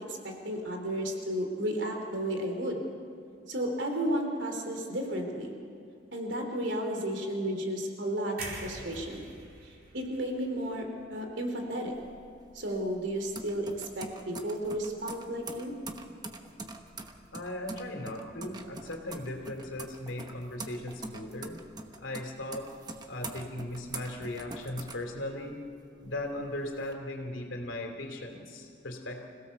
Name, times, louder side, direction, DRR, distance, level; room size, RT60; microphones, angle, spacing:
voice 1, 0.0-2.8 3.5-5.6 6.1-9.3 9.6-11.9 12.5-15.7, right 1 dB, 70° right, 3 dB, 3.2 m, -33 dB
sound 1, 8.4-12.4 12.8-13.0, right 2 dB, 50° right, 4.6 m, -46 dB
sound 2, 11.9-25.7 26.1-26.9, right 2 dB, 20° right, 1.1 m, -44 dB
voice 2, 17.3-21.6 22.0-22.7 23.1-25.6 26.0-29.2, left 1 dB, 85° left, 3 dB, 3.1 m, -38 dB
26.0 x 16.5 x 7.0 m, 2.4 s
head